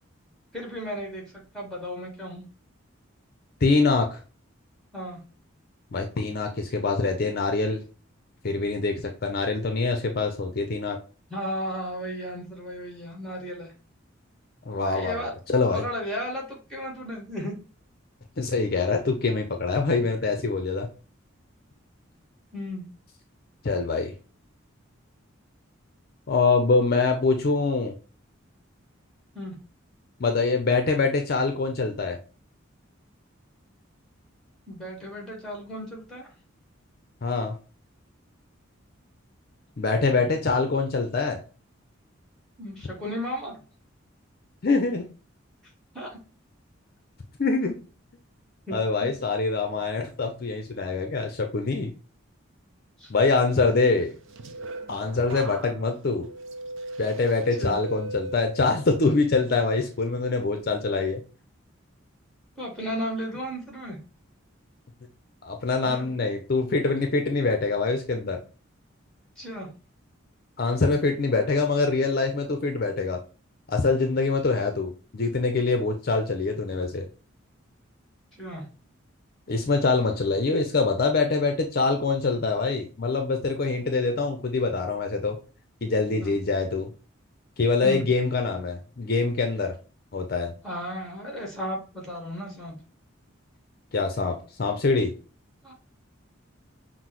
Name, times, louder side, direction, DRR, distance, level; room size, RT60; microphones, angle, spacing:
voice 1, 0.5-2.4 4.9-5.2 11.3-13.7 14.8-15.3 15.7-17.5 22.5-22.9 29.3-29.6 34.7-36.3 42.6-43.6 45.9-46.2 48.7-48.8 53.0-53.1 57.6-57.8 62.6-64.0 65.8-66.1 69.4-69.7 78.4-78.6 86.1-86.3 87.8-88.0 90.6-92.7 95.6-95.7, equal, ahead, -1 dB, 1.5 m, -34 dB
voice 2, 3.6-4.2 5.9-7.8 8.4-11.0 14.7-15.9 18.4-20.9 23.6-24.1 26.3-27.9 30.2-32.2 37.2-37.5 39.8-41.4 44.6-45.1 47.4-47.7 48.7-51.9 53.1-54.1 54.9-56.3 57.0-61.2 65.4-68.4 70.6-73.2 73.7-77.1 79.5-85.4 85.8-86.9 87.6-89.7 90.1-90.5 93.9-95.1, left 3 dB, 50° left, 5 dB, 0.5 m, -24 dB
sound 1, 54.0-59.0 59.4-59.9, right 2 dB, 65° right, 0.5 m, -38 dB
5.8 x 2.0 x 2.9 m, 0.36 s
head